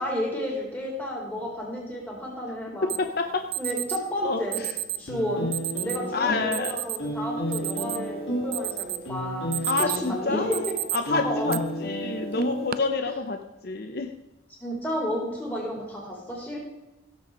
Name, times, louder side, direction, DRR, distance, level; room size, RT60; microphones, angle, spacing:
voice 1, 0.0-2.9 3.6-4.6 5.0-5.5 5.8-10.6 11.2-11.6 14.6-16.6, equal, 10° left, -2 dB, 3.9 m, -32 dB
voice 2, 2.8-3.4 4.2-4.7 5.4-5.5 6.1-6.8 9.6-10.6 10.9-14.1, left 4 dB, 50° left, 6 dB, 0.8 m, -28 dB
Alarm, 2.9-3.0 3.5-4.0 4.5-5.0 5.5-6.0 6.5-7.0 7.4-8.1 8.5-9.0 9.4-10.1 10.5-11.0 11.5-11.6 12.4-12.7, right 15 dB, 50° right, 0.5 m, -30 dB
sound 1, 5.1-13.2, equal, 70° left, 3.0 m, -32 dB
17.0 x 7.6 x 4.9 m, 1.0 s
head